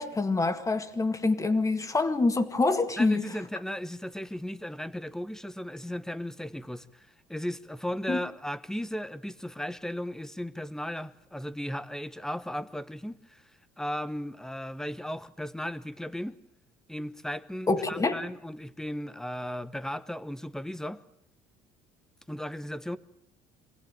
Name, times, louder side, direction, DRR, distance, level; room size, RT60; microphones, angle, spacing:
voice 1, 0.0-3.2 8.1-8.2 17.7-18.2, left 3 dB, 20° left, 2.0 m, -26 dB
voice 2, 3.0-13.5 13.8-16.4 16.9-21.0 22.3-23.0, equal, 5° left, 1.1 m, -36 dB
24.5 x 16.5 x 9.1 m
cardioid pair, 110°, 16 cm